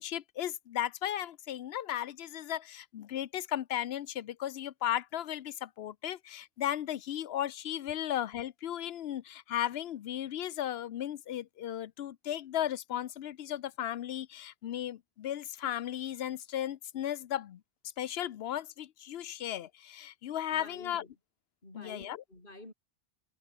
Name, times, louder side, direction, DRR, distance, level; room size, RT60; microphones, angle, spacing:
voice 1, 0.0-17.6 18.0-21.0 21.7-22.2, left 11 dB, 75° left, 0.9 m, -35 dB
voice 2, 20.5-21.1 21.6-22.7, left 1 dB, 55° left, 5.7 m, -50 dB
omnidirectional pair, 1.1 m